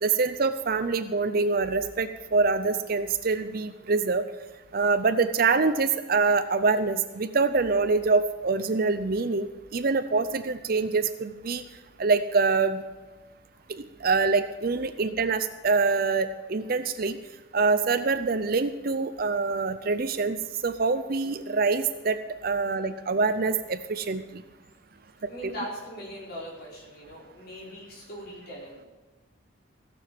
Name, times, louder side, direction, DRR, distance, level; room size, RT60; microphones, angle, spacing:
voice 1, 0.0-4.3 4.7-11.6 12.0-12.8 13.7-17.2 17.5-20.4 20.6-24.4 25.2-25.5, right 4 dB, 50° right, 10 dB, 0.5 m, -25 dB
voice 2, 25.3-28.9, equal, 50° left, -4 dB, 4.4 m, -40 dB
15.5 x 6.9 x 7.6 m, 1.2 s
head